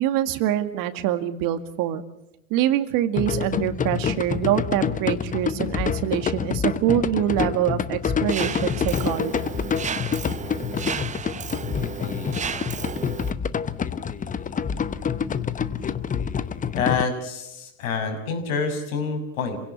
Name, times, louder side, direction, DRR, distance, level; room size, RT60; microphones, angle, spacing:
voice 1, 0.0-2.0 2.5-9.5, right 12 dB, 55° right, 10 dB, 2.1 m, -25 dB
sound 1, 3.2-17.0, left 7 dB, 20° left, 0.9 m, -27 dB
Mechanisms, 8.3-13.3, right 7 dB, 20° right, 0.8 m, -33 dB
voice 2, 16.7-19.6, left 5 dB, 80° left, 5 dB, 6.4 m, -27 dB
27.5 x 17.0 x 8.6 m, 0.84 s
hypercardioid pair, 105°, 41 cm